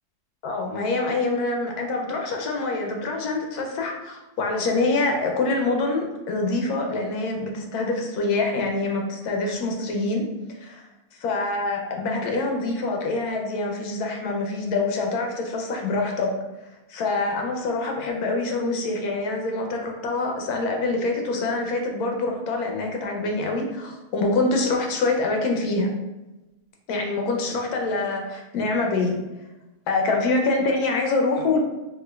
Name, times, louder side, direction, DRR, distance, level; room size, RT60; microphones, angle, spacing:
voice 1, 0.4-10.2 10.6-10.8 11.2-16.3 16.9-25.9 26.9-29.2 29.9-31.6, left 3 dB, 80° left, 2 dB, 1.1 m, -25 dB
4.2 x 2.5 x 2.2 m, 1.0 s
omnidirectional pair, 1.6 m